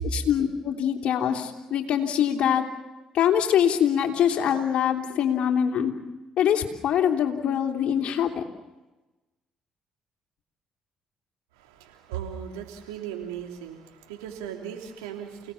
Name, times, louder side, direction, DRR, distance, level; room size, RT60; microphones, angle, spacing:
voice 1, 0.0-2.6 3.1-5.9 6.4-8.4, left 9 dB, 65° left, 3 dB, 3.2 m, -24 dB
voice 2, 11.5-15.5, right 9 dB, 90° right, 1 dB, 3.4 m, -37 dB
29.5 x 18.5 x 7.2 m, 1.1 s
hypercardioid pair, 50°, 2 cm